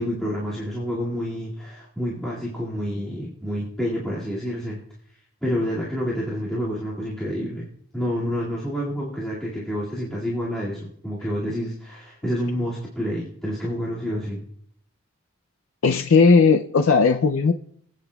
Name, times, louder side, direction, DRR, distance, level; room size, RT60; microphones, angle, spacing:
voice 1, 0.0-4.8 5.4-7.7 7.9-14.4, equal, 5° left, -9 dB, 2.2 m, -28 dB
voice 2, 15.8-17.5, left 4 dB, 90° left, 6 dB, 0.5 m, -17 dB
25.0 x 9.1 x 2.3 m, 0.65 s
head